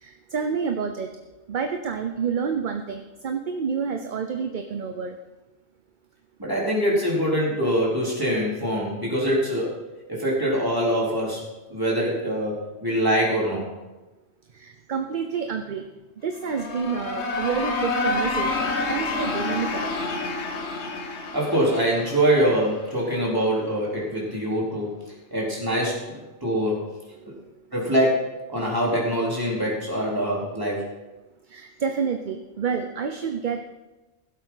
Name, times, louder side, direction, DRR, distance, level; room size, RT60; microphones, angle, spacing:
voice 1, 0.0-1.1 1.5-5.2 14.5-15.9 16.2-19.9 23.1-23.2 24.0-24.2 27.3-27.4 31.5-33.8, right 6 dB, 50° right, 6 dB, 0.9 m, -29 dB
voice 2, 6.4-9.8 10.1-12.6 12.8-13.7 21.3-24.9 25.3-26.8 27.7-30.9, equal, 20° right, -5 dB, 4.0 m, -24 dB
sound 1, 16.3-23.1, left 3 dB, 75° left, 1.5 m, -29 dB
16.0 x 8.0 x 5.8 m, 1.1 s
omnidirectional pair, 1.1 m